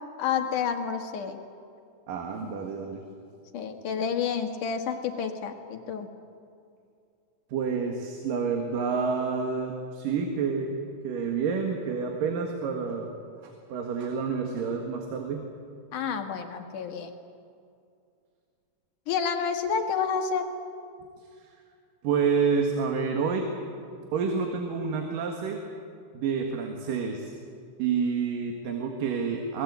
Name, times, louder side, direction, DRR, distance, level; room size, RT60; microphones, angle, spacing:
voice 1, 0.2-1.4 2.4-2.5 3.5-6.1 15.9-17.1 19.1-20.5, left 6 dB, 75° left, 5 dB, 3.2 m, -29 dB
voice 2, 2.1-3.0 7.5-10.7 11.0-13.1 13.4-15.4 22.0-23.5 24.1-25.6 26.1-27.3 27.8-29.6, right 5 dB, 90° right, 3 dB, 3.4 m, -28 dB
26.5 x 20.0 x 8.3 m, 2.4 s
omnidirectional pair, 3.7 m